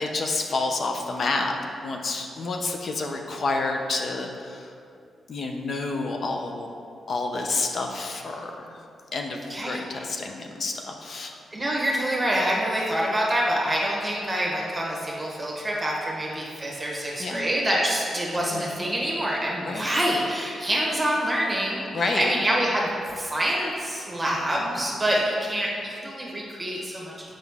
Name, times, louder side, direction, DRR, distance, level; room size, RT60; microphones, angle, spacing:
voice 1, 0.0-1.5 1.8-4.7 5.3-6.7 7.1-8.8 9.1-11.4 17.2-17.5 18.3-18.7 19.6-19.9 21.9-22.3, left 3 dB, 55° left, 2 dB, 0.7 m, -29 dB
voice 2, 9.5-9.8 11.5-22.9 23.1-27.4, right 1 dB, 20° right, -4 dB, 1.2 m, -26 dB
7.1 x 5.3 x 3.5 m, 2.4 s
cardioid pair, 85°, 0 cm